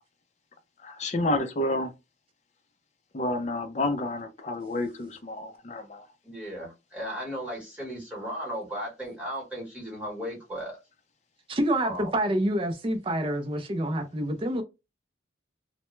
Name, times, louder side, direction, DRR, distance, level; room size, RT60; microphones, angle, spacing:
voice 1, 0.8-1.9 3.1-6.1, left 1 dB, 35° left, 0.4 m, -29 dB
voice 2, 6.2-10.8 11.8-12.1, equal, 5° right, 1.1 m, -36 dB
voice 3, 11.5-14.6, right 1 dB, 25° right, 0.4 m, -27 dB
2.1 x 2.1 x 3.0 m
head